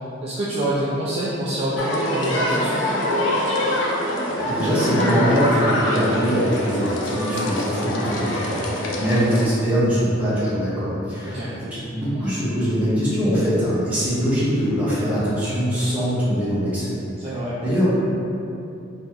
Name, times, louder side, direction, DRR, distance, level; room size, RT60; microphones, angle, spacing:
voice 1, 0.2-3.1 11.3-11.5 17.2-17.5, right 1 dB, 30° right, -7 dB, 0.3 m, -26 dB
sound 1, 1.8-9.4, left 1 dB, 70° left, 0.5 m, -24 dB
voice 2, 4.3-16.9 17.6-17.9, equal, 5° right, -11 dB, 1.0 m, -22 dB
2.9 x 2.8 x 3.5 m, 2.8 s
head